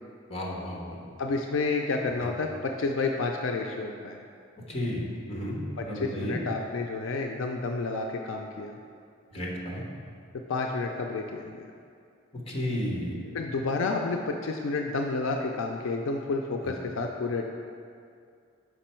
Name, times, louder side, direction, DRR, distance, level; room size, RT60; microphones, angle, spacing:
voice 1, 0.3-1.0 4.7-5.6 5.9-6.4 9.3-9.8 12.5-13.3, equal, 30° left, -2 dB, 1.0 m, -32 dB
voice 2, 1.2-4.2 5.8-8.7 10.3-11.7 13.3-17.4, left 3 dB, 75° left, 2 dB, 0.4 m, -30 dB
6.1 x 5.3 x 4.3 m, 2.3 s
head